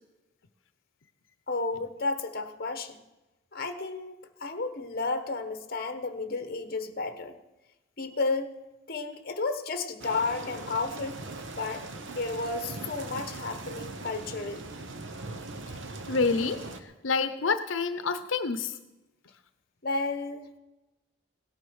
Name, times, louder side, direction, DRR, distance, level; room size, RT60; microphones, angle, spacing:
voice 1, 1.5-3.0 3.5-7.4 8.0-8.5 8.9-11.2 11.5-14.8 19.8-20.5, left 3 dB, 50° left, 9 dB, 1.2 m, -32 dB
sound 1, 10.0-16.8, right 2 dB, 75° right, 1.2 m, -40 dB
voice 2, 16.1-18.8, left 4 dB, 85° left, 10 dB, 0.8 m, -28 dB
17.0 x 9.7 x 6.4 m, 1.0 s
head